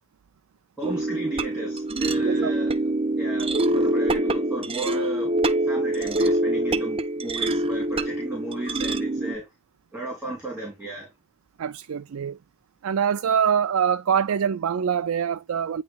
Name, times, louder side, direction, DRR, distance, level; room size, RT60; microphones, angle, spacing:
voice 1, 0.8-2.7 3.2-5.3 5.6-9.5 9.9-11.1, right 2 dB, 5° right, 3.1 m, -34 dB
sound 1, 0.8-9.3, right 1 dB, 25° right, 0.7 m, -25 dB
voice 2, 11.6-12.4 12.8-15.8, right 7 dB, 85° right, 0.4 m, -24 dB
9.4 x 3.2 x 3.5 m
head